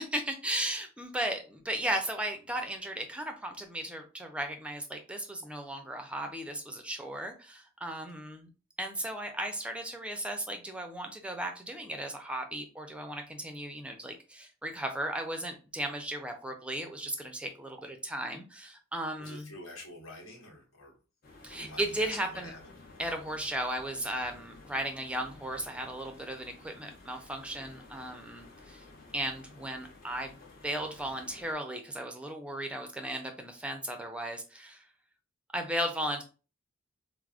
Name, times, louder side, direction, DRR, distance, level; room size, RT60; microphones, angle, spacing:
voice 1, 0.0-8.5 8.8-19.5 21.4-22.5 23.0-28.8 29.1-30.4 30.6-34.9 35.5-36.2, right 1 dB, 5° right, 5 dB, 0.5 m, -36 dB
voice 2, 19.2-21.0 21.5-22.6, left 1 dB, 75° left, -2 dB, 1.1 m, -46 dB
sound 1, 21.2-31.5, left 2 dB, 45° left, 0.8 m, -53 dB
4.6 x 2.0 x 2.4 m, 0.34 s
head